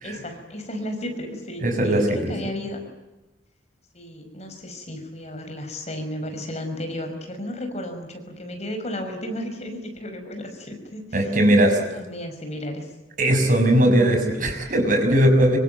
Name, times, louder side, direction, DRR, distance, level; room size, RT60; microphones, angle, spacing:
voice 1, 0.0-2.8 3.9-11.3 11.7-12.9, left 1 dB, 35° left, 5 dB, 5.6 m, -33 dB
voice 2, 1.6-2.3 11.1-11.9 13.2-15.6, right 1 dB, 45° right, 5 dB, 6.1 m, -19 dB
26.0 x 24.5 x 9.3 m, 1.0 s
head